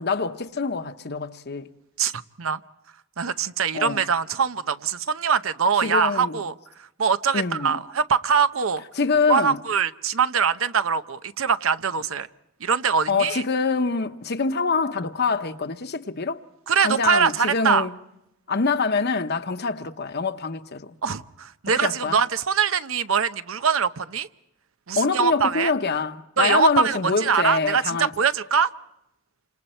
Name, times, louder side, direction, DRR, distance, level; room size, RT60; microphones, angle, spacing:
voice 1, 0.0-1.7 3.7-4.1 5.8-6.4 7.3-7.8 9.0-9.6 13.1-16.4 16.8-17.9 18.5-20.9 21.8-22.2 25.0-28.1, left 4 dB, 55° left, 1.0 m, -25 dB
voice 2, 3.2-6.5 7.0-8.8 9.3-12.3 12.6-13.4 16.7-17.9 21.0-24.3 24.9-25.7 26.4-28.7, right 6 dB, 85° right, 0.8 m, -23 dB
28.5 x 26.5 x 4.4 m
head